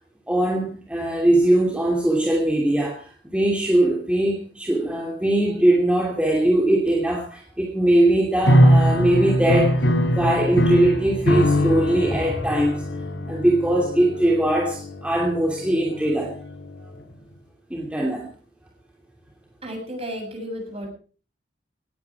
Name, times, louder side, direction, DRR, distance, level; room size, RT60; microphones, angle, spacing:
voice 1, 0.3-9.9 10.1-12.9 13.3-16.4 17.7-18.3, right 1 dB, 5° right, 0 dB, 2.7 m, -21 dB
sound 1, 8.4-16.8, equal, 85° left, 3.9 m, -22 dB
voice 2, 19.6-20.9, equal, 35° right, 2 dB, 7.7 m, -33 dB
18.5 x 14.5 x 4.8 m, 0.39 s
head